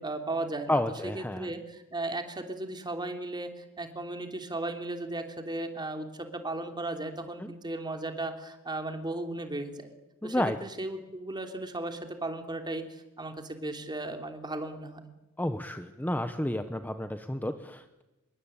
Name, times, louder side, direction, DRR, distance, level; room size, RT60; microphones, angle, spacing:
voice 1, 0.0-9.9 10.2-15.0, right 2 dB, 20° right, 5 dB, 3.2 m, -36 dB
voice 2, 0.7-1.5 7.4-7.5 10.2-10.6 15.4-18.0, left 1 dB, 10° left, 9 dB, 1.1 m, -31 dB
26.5 x 22.5 x 8.9 m, 1.0 s
head